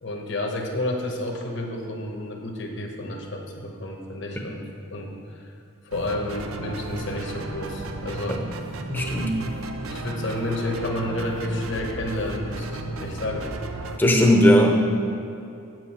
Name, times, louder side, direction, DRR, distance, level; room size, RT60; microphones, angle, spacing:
voice 1, 0.0-4.7 4.9-5.5 5.8-8.5 9.9-13.5, left 1 dB, 60° left, 2 dB, 1.1 m, -30 dB
sound 1, 5.9-14.0, right 3 dB, 85° right, 0.6 m, -34 dB
voice 2, 8.9-9.4 14.0-14.7, equal, 10° left, 1 dB, 0.8 m, -17 dB
8.4 x 7.6 x 4.3 m, 2.6 s
head